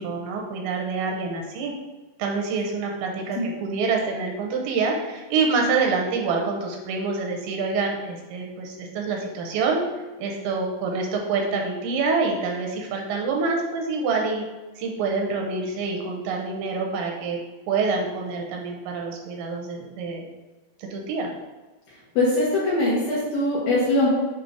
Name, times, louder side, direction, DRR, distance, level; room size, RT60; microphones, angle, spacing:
voice 1, 0.0-1.7 2.2-9.8 10.2-14.4 14.8-17.4 17.7-20.2 20.8-21.3, right 4 dB, 80° right, 1 dB, 2.9 m, -26 dB
voice 2, 22.2-24.1, left 2 dB, 70° left, -7 dB, 2.3 m, -22 dB
7.8 x 2.8 x 4.9 m, 1.2 s
omnidirectional pair, 5.4 m